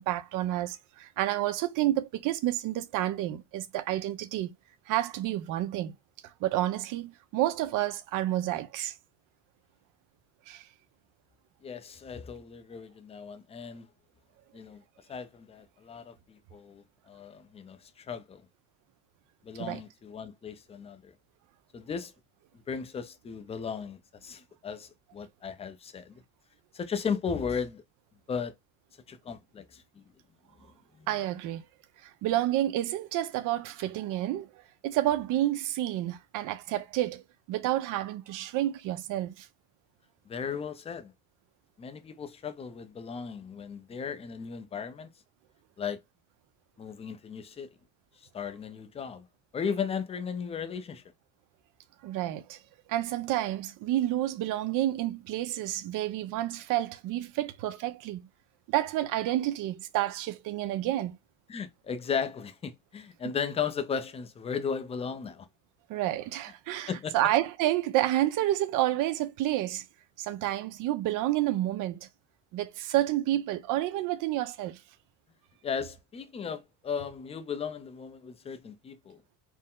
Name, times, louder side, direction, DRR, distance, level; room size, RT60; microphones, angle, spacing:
voice 1, 0.0-4.5 4.9-5.9 6.2-8.9 10.5-10.6 19.6-19.8 31.1-31.6 32.0-34.5 34.8-37.2 37.5-39.5 52.0-52.6 52.9-58.2 58.7-61.2 65.9-69.8 70.2-72.1 72.5-74.8, right 14 dB, 55° right, 0.7 m, -29 dB
voice 2, 11.6-13.9 14.5-14.8 15.1-18.4 19.4-21.1 21.7-22.1 22.7-26.2 26.7-27.8 28.3-28.5 29.1-30.0 31.0-31.1 40.3-41.1 41.8-45.1 45.8-46.0 46.8-47.7 48.3-49.3 49.5-51.0 61.5-65.5 66.9-67.1 75.6-79.2, left 6 dB, 15° left, 0.4 m, -36 dB
4.4 x 2.1 x 3.6 m
cardioid pair, 140°, 39 cm